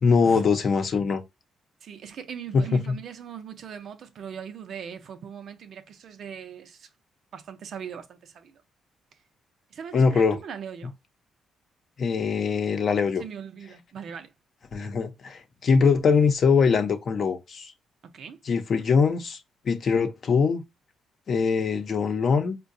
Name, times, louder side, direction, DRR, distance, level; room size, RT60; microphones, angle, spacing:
voice 1, 0.0-1.2 2.5-3.0 9.9-10.4 12.0-13.2 14.7-17.7 18.5-19.4 19.6-20.6 21.3-22.6, left 5 dB, 50° left, 0.7 m, -22 dB
voice 2, 1.8-6.9 7.3-8.5 9.7-10.9 13.2-14.3 18.0-18.4, right 7 dB, 60° right, 0.6 m, -40 dB
4.6 x 2.2 x 2.6 m
cardioid pair, 90°, 0 cm